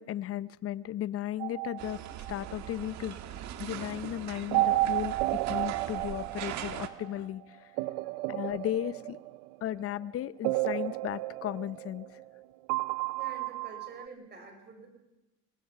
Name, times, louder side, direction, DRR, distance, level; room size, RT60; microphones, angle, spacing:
voice 1, 0.0-2.0 2.3-3.2 3.6-7.7 8.3-9.2 9.6-12.2, left 12 dB, 45° left, 17 dB, 0.7 m, -35 dB
sound 1, 1.4-2.7 4.5-7.1 7.8-9.7 10.4-12.4 12.7-14.1, right 18 dB, 75° right, 0.6 m, -32 dB
sound 2, 1.8-6.9, right 11 dB, 60° right, 1.6 m, -41 dB
voice 2, 7.9-8.3 13.2-14.9, right 3 dB, 30° right, 5 dB, 5.8 m, -48 dB
26.5 x 19.0 x 5.7 m, 0.98 s
supercardioid pair, 105°, 32 cm